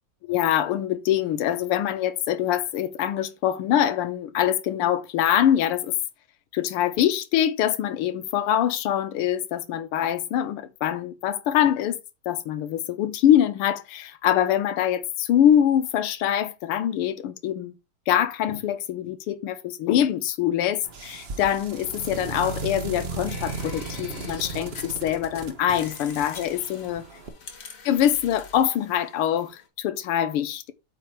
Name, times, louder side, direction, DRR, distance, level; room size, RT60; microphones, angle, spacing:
voice 1, 0.2-5.9 6.5-12.0 12.3-17.7 18.1-27.1 27.8-30.7, left 10 dB, 90° left, 1.7 m, -24 dB
sound 1, 20.8-27.3, right 3 dB, 40° right, 1.0 m, -36 dB
sound 2, 23.3-25.4 25.8-29.7, left 5 dB, 45° left, 1.5 m, -44 dB
8.6 x 3.9 x 4.6 m
omnidirectional pair, 2.4 m